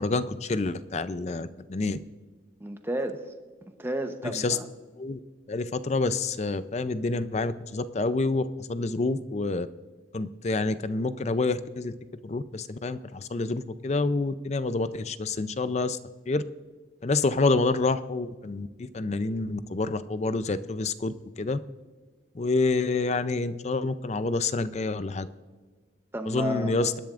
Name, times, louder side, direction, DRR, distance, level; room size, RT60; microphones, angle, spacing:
voice 1, 0.0-2.0 4.3-4.6 5.0-5.2 5.5-9.7 10.1-11.9 12.2-16.0 16.3-16.4 17.0-21.6 22.3-25.3 26.3-26.9, left 3 dB, 35° left, 13 dB, 0.5 m, -28 dB
voice 2, 2.6-3.3 3.8-4.7 26.1-26.9, right 1 dB, 15° right, 6 dB, 0.8 m, -32 dB
25.5 x 10.5 x 2.5 m, 1.4 s
head